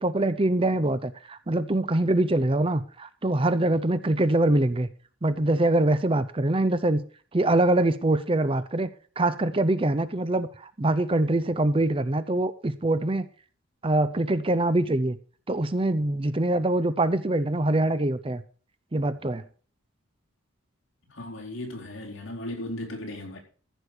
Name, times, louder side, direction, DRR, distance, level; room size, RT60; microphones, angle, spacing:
voice 1, 0.0-4.9 5.2-7.0 7.3-8.9 9.2-13.3 13.8-15.2 15.5-18.4 18.9-19.4, right 1 dB, 25° right, 0.6 m, -24 dB
voice 2, 21.1-23.4, left 1 dB, 65° left, 4.5 m, -36 dB
14.5 x 6.3 x 6.7 m
head